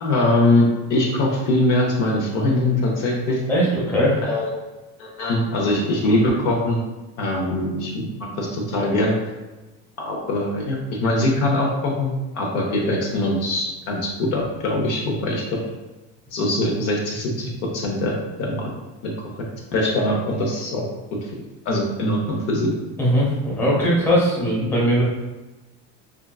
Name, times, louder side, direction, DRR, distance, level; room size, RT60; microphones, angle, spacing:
voice 1, 0.0-3.4 4.2-4.5 5.0-6.8 7.2-9.1 10.0-15.6 16.3-18.6 19.0-19.1 19.7-20.8 21.7-22.7, left 1 dB, 60° left, -1 dB, 0.7 m, -22 dB
voice 2, 3.5-4.2 23.0-25.0, equal, 5° left, -7 dB, 1.0 m, -19 dB
3.6 x 2.3 x 2.3 m, 1.1 s
cardioid pair, 135°, 34 cm